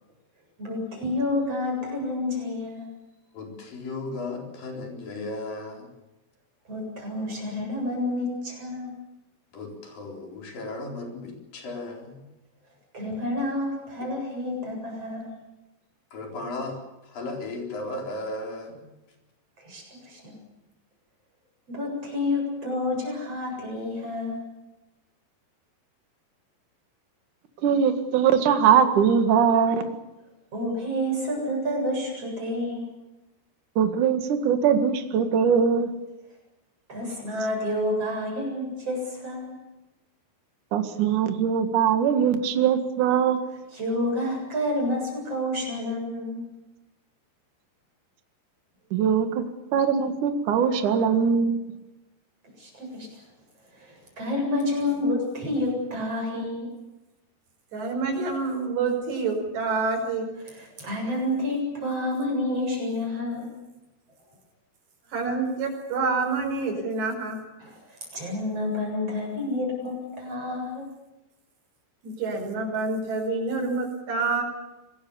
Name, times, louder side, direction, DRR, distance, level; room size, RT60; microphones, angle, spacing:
voice 1, 0.6-2.9 6.7-8.9 12.9-15.3 19.6-20.2 21.7-24.5 30.5-32.9 36.9-39.6 43.7-46.5 52.6-53.1 53.7-56.7 60.5-63.6 67.6-70.9, left 1 dB, 35° right, 1 dB, 8.7 m, -29 dB
voice 2, 3.3-5.9 9.5-12.2 16.1-16.8 17.0-18.9, left 2 dB, 55° left, 2 dB, 5.8 m, -35 dB
voice 3, 27.6-29.9 33.8-35.9 40.7-43.4 48.9-49.4 49.7-51.6, right 7 dB, 55° right, 8 dB, 2.9 m, -21 dB
voice 4, 57.7-60.3 65.1-67.4 72.0-74.4, right 4 dB, 80° right, 2 dB, 7.4 m, -27 dB
26.0 x 21.0 x 7.1 m, 1.0 s
omnidirectional pair, 4.8 m